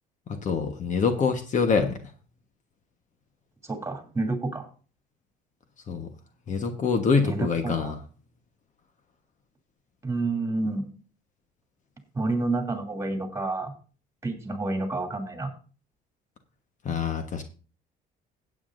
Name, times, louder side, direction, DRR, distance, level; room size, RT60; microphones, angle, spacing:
voice 1, 0.4-2.0 5.9-6.1 6.5-8.0 16.8-17.4, left 5 dB, 45° left, 7 dB, 1.3 m, -25 dB
voice 2, 3.6-4.7 7.2-7.9 10.0-10.9 12.1-13.7 14.2-15.5, right 2 dB, 15° right, 3 dB, 2.8 m, -29 dB
16.5 x 8.4 x 2.6 m, 0.37 s
cardioid pair, 110°, 17 cm